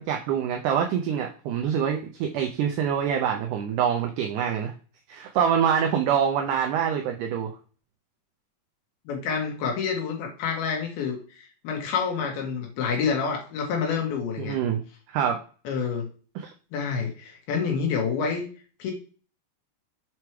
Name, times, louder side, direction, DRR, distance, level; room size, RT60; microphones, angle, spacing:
voice 1, 0.0-4.7 5.1-7.6 14.4-14.8 15.1-15.4 16.4-16.5, right 8 dB, 80° right, 3 dB, 1.9 m, -25 dB
voice 2, 9.1-14.6 15.6-16.1 16.7-18.4 18.8-18.9, left 6 dB, 85° left, 1 dB, 3.3 m, -28 dB
7.1 x 3.2 x 4.5 m, 0.38 s
omnidirectional pair, 4.3 m